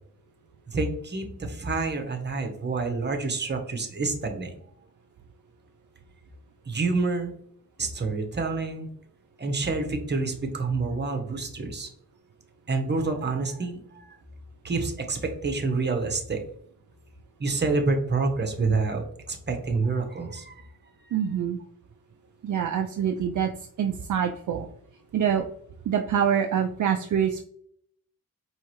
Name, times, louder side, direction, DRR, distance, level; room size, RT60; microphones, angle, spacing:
voice 1, 0.7-4.5 6.7-7.3 7.8-8.9 9.4-11.9 12.7-13.8 14.6-16.4 17.4-20.6 21.1-21.2, right 3 dB, 30° right, 4 dB, 1.0 m, -28 dB
voice 2, 21.1-21.6 22.4-23.5 23.8-24.7 25.1-25.5 25.9-27.4, right 8 dB, 60° right, 5 dB, 0.4 m, -25 dB
4.7 x 3.1 x 3.0 m, 0.66 s
cardioid pair, 85°, 35 cm